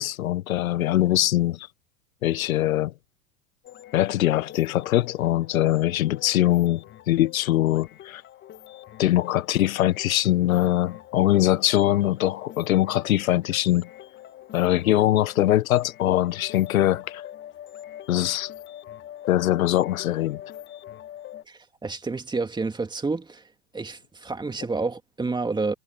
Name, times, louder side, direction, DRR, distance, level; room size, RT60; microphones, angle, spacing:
voice 1, 0.0-1.7 2.2-2.9 3.9-8.2 9.0-13.9 14.5-17.2 18.1-18.5 19.3-20.4, left 14 dB, 80° left, 1.2 m, -22 dB
sound 1, 3.6-21.4, left 12 dB, 25° left, 1.3 m, -44 dB
voice 2, 21.5-23.4 23.7-25.7, right 3 dB, 10° right, 2.5 m, -29 dB
hypercardioid pair, 115°, 42 cm